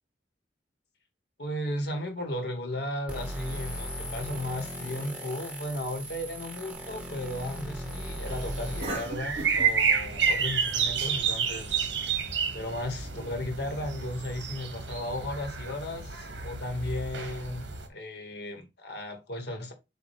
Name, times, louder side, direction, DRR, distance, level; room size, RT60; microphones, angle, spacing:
voice 1, 1.4-11.8 12.5-19.7, left 1 dB, 65° left, 1.7 m, -35 dB
sound 1, 3.1-8.8, equal, 5° right, 1.7 m, -37 dB
Cough, 6.7-12.2, right 2 dB, 35° right, 2.2 m, -43 dB
sound 2, 8.3-17.9, right 6 dB, 80° right, 1.4 m, -30 dB
7.2 x 2.7 x 4.9 m
head